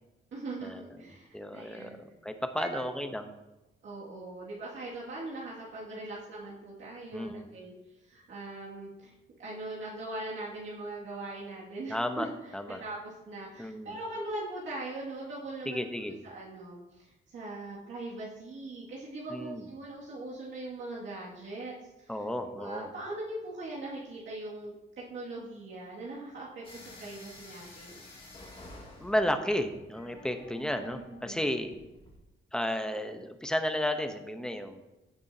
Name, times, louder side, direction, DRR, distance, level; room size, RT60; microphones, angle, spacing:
voice 1, 0.3-2.0 2.5-2.9 3.8-7.7 8.0-9.1 9.4-15.9 16.2-21.8 22.2-22.3 22.6-24.8 25.1-28.0 30.6-31.4, right 2 dB, 65° right, -7 dB, 2.2 m, -41 dB
voice 2, 1.3-2.0 2.2-3.3 7.1-7.5 11.9-12.8 13.6-13.9 15.7-16.2 19.3-19.6 22.1-22.9 29.0-31.8 32.5-34.9, left 1 dB, 5° left, 6 dB, 0.8 m, -33 dB
sound 1, 26.6-32.2, left 2 dB, 25° left, 2.4 m, -51 dB
15.5 x 7.0 x 2.8 m, 1.0 s
cardioid pair, 140°, 21 cm